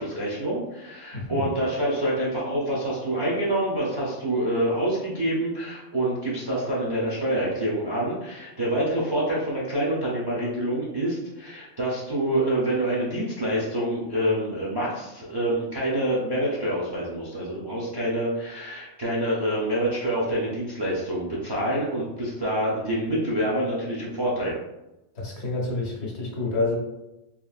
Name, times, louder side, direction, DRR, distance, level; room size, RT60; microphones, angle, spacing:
voice 1, 0.0-24.6, right 1 dB, 35° right, -6 dB, 0.4 m, -26 dB
voice 2, 1.1-1.5 25.1-26.8, left 2 dB, 65° left, -2 dB, 0.9 m, -28 dB
3.1 x 2.4 x 2.3 m, 0.93 s
omnidirectional pair, 1.3 m